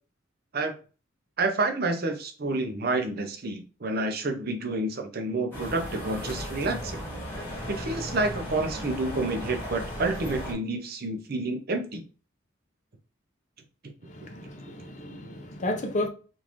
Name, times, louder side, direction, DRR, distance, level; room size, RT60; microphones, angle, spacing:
voice 1, 1.4-7.0 7.7-12.0, right 2 dB, 50° right, 0.6 m, -29 dB
sound 1, 5.5-10.5, equal, 10° left, 1.2 m, -36 dB
voice 2, 14.1-16.1, left 1 dB, 35° left, 0.6 m, -32 dB
3.7 x 2.5 x 3.0 m
head